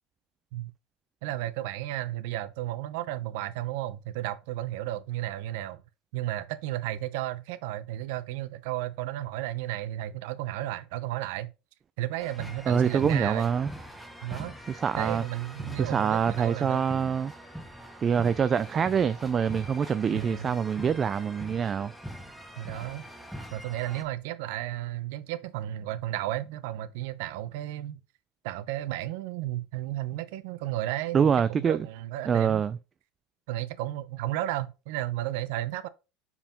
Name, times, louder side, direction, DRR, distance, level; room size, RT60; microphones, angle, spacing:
voice 1, 1.2-5.8 6.1-11.5 12.0-13.5 14.2-16.8 20.1-20.6 22.6-23.0 23.5-28.0 28.4-32.6 33.5-35.9, right 14 dB, 70° right, 0.7 m, -33 dB
sound 1, 12.2-24.0, equal, ahead, 1.0 m, -43 dB
voice 2, 12.7-13.7 14.7-15.2 15.8-17.3 18.0-21.9 31.1-31.9 32.3-32.8, right 7 dB, 25° right, 0.3 m, -25 dB
5.5 x 4.8 x 5.0 m
supercardioid pair, 150°, 0 cm